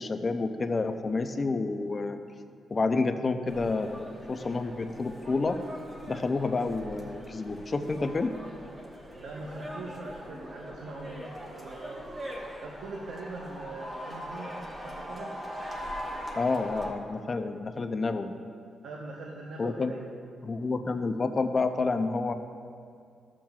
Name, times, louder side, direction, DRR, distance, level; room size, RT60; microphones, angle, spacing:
voice 1, 0.0-2.2 2.7-5.6 6.1-8.3 16.3-18.4 19.6-19.9 20.4-22.3, left 3 dB, 25° left, 8 dB, 0.4 m, -29 dB
sound 1, 3.5-16.9, equal, 20° right, 0.9 m, -41 dB
voice 2, 9.1-12.1 12.6-14.5 14.8-15.3 18.8-20.1, right 3 dB, 70° right, -2 dB, 0.7 m, -41 dB
13.5 x 7.3 x 2.3 m, 2.4 s
wide cardioid pair, 170°, 0 cm